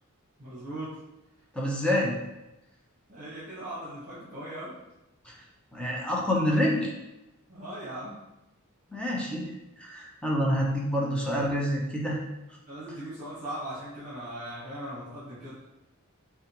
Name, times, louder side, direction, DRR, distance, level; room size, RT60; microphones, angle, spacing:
voice 1, 0.4-1.0 3.1-4.7 7.5-8.2 12.7-15.6, right 1 dB, 40° right, -9 dB, 1.5 m, -39 dB
voice 2, 1.5-2.2 5.3-5.4 5.7-6.9 8.9-9.5 9.8-12.2, equal, 5° left, -3 dB, 0.8 m, -27 dB
6.3 x 2.4 x 3.0 m, 0.95 s
head